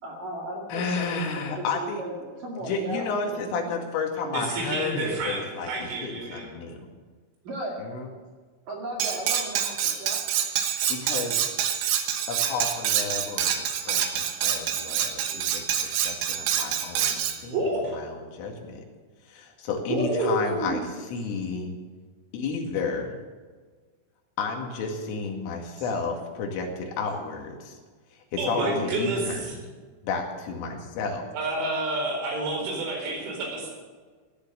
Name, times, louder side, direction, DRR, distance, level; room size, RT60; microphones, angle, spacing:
voice 1, 0.0-3.6 7.4-7.7 8.7-10.2 25.8-25.9 28.5-28.8, right 1 dB, 50° right, -1 dB, 3.2 m, -36 dB
voice 2, 0.7-2.0 2.6-6.9 7.8-8.1 10.6-11.5 12.3-13.6 13.9-17.6 17.9-18.8 19.3-20.8 21.1-21.7 22.3-23.1 24.4-27.8 28.3-29.6 30.0-31.3, left 4 dB, 75° left, 1 dB, 4.7 m, -32 dB
voice 3, 4.3-6.5 17.5-18.0 19.9-20.7 28.4-29.6 31.3-33.7, right 2 dB, 90° right, 1 dB, 7.0 m, -29 dB
Cutlery silverware, 9.0-17.4, right 9 dB, 70° right, 2.6 m, -27 dB
17.0 x 11.0 x 7.1 m, 1.5 s
omnidirectional pair, 6.0 m